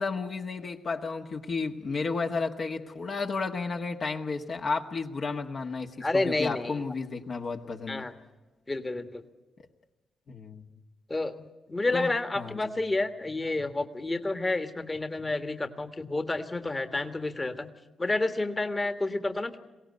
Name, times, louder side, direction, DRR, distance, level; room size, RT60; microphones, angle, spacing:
voice 1, 0.0-8.1 10.3-10.6 11.9-12.1 12.3-12.6, left 4 dB, 55° left, 2 dB, 1.5 m, -32 dB
voice 2, 6.0-6.8 7.9-8.1 8.7-9.2 11.1-17.7 18.0-19.6, left 2 dB, 25° left, 7 dB, 1.5 m, -30 dB
22.5 x 17.0 x 9.5 m, 1.2 s
supercardioid pair, 60°, 0 cm